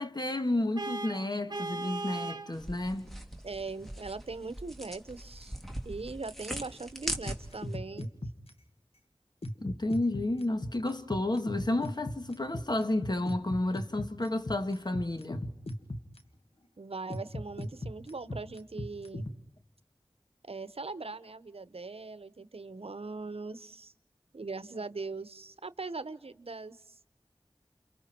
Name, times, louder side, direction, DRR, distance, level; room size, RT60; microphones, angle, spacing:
voice 1, 0.0-3.1 9.6-15.5, left 2 dB, 45° left, 1.6 m, -31 dB
Vehicle horn car horn honking, 0.8-2.5, right 3 dB, 45° right, 1.3 m, -37 dB
sound 1, 2.5-7.8, equal, ahead, 2.4 m, -41 dB
voice 2, 3.4-5.6 5.8-8.1 16.8-19.3 20.4-23.9 24.3-26.9, right 3 dB, 80° right, 0.9 m, -40 dB
sound 2, 7.3-8.5 9.4-16.2 17.1-19.3, left 1 dB, 80° left, 1.8 m, -36 dB
29.0 x 29.0 x 4.4 m
wide cardioid pair, 50°, 10 cm